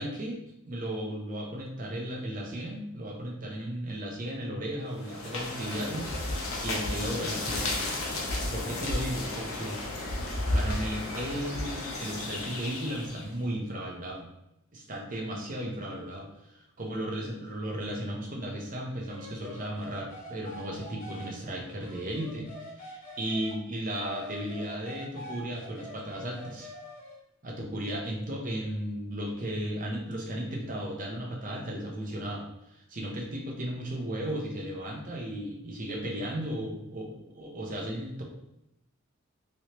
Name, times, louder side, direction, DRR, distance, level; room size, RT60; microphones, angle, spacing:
voice 1, 0.0-6.1 6.6-7.8 8.5-9.8 10.5-14.3 14.7-26.7 27.4-38.2, right 1 dB, 40° right, -1 dB, 0.8 m, -35 dB
sound 1, 4.9-13.3, left 2 dB, 90° left, 0.8 m, -33 dB
sound 2, 19.0-23.6 24.0-27.2, left 1 dB, 45° left, 0.9 m, -45 dB
3.1 x 2.9 x 3.0 m, 0.86 s
head